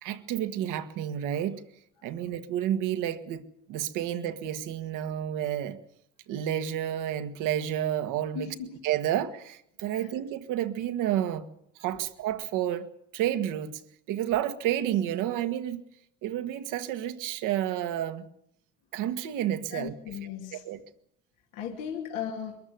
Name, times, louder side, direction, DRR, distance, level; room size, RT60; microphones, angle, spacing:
voice 1, 0.0-1.6 2.0-5.8 6.3-8.5 8.8-11.4 11.8-12.9 13.1-13.8 14.1-15.8 16.2-18.2 18.9-20.2 20.5-20.8, right 11 dB, 75° right, 1.6 m, -30 dB
voice 2, 8.3-8.7 9.9-10.1 19.7-20.6 21.5-22.6, left 8 dB, 80° left, 2.5 m, -36 dB
22.5 x 13.5 x 9.4 m
supercardioid pair, 75°, 31 cm